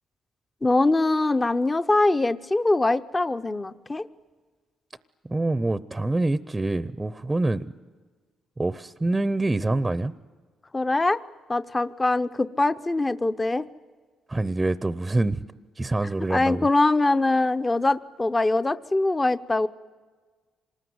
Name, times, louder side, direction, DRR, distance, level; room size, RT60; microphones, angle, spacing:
voice 1, 0.6-4.1 10.7-11.2 11.5-13.6 16.3-19.7, left 2 dB, 20° left, 11 dB, 0.7 m, -23 dB
voice 2, 5.2-7.7 8.6-10.1 14.3-15.4 15.8-16.7, right 2 dB, 15° right, 14 dB, 0.7 m, -25 dB
26.5 x 20.0 x 9.5 m, 1.4 s
cardioid pair, 90°, 0 cm